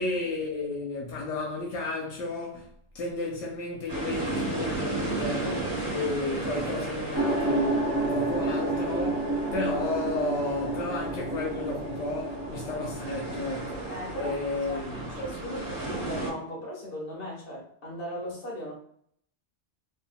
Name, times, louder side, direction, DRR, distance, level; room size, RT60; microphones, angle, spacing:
voice 1, 0.0-2.7 2.9-15.0 15.4-15.5, left 2 dB, 85° left, 1.0 m, -33 dB
sound 1, 3.9-16.3, right 2 dB, 45° right, 1.1 m, -35 dB
sound 2, 7.1-15.9, right 2 dB, 20° right, 0.5 m, -31 dB
voice 2, 13.9-14.4 14.7-18.7, equal, 50° left, 1.3 m, -37 dB
3.4 x 2.5 x 2.2 m
omnidirectional pair, 1.2 m